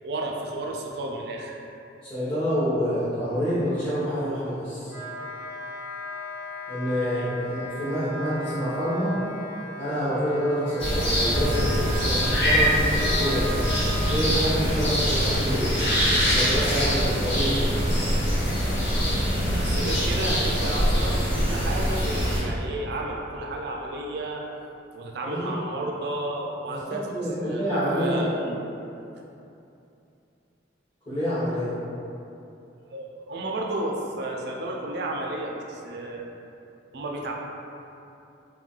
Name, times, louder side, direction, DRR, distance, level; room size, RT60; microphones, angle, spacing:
voice 1, 0.0-1.6 7.0-7.3 19.6-24.4 24.9-27.1 27.4-28.6 28.9-29.2 32.9-36.2 36.9-37.3, right 2 dB, 60° right, 0 dB, 0.4 m, -32 dB
voice 2, 2.0-4.9 6.7-9.2 9.7-13.6 14.1-16.0 16.3-17.8 25.2-25.4 26.7-28.3 31.1-31.7, equal, 25° left, -15 dB, 0.8 m, -27 dB
Wind instrument woodwind instrument, 4.8-14.1, equal, 80° left, 1.1 m, -37 dB
sound 1, 10.8-22.4, equal, 65° left, 0.7 m, -23 dB
2.3 x 2.2 x 3.7 m, 2.7 s
head